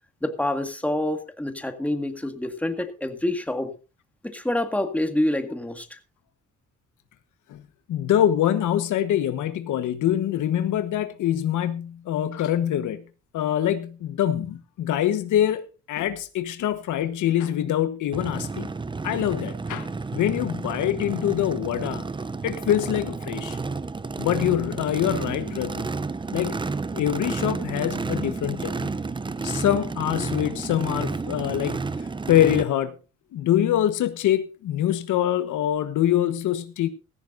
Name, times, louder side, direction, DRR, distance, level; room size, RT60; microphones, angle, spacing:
voice 1, 0.2-3.7 4.2-6.0, left 1 dB, 5° left, 1.9 m, -27 dB
voice 2, 7.9-13.0 13.3-18.7 19.0-22.0 22.4-23.6 24.2-25.9 26.3-26.7 26.9-29.0 29.4-31.8 32.3-32.9 33.3-36.9, left 11 dB, 80° left, 1.3 m, -24 dB
Race car auto racing / Idling / Accelerating revving vroom, 18.1-32.6, right 4 dB, 15° right, 0.6 m, -31 dB
16.5 x 14.5 x 2.6 m
cardioid pair, 90°, 30 cm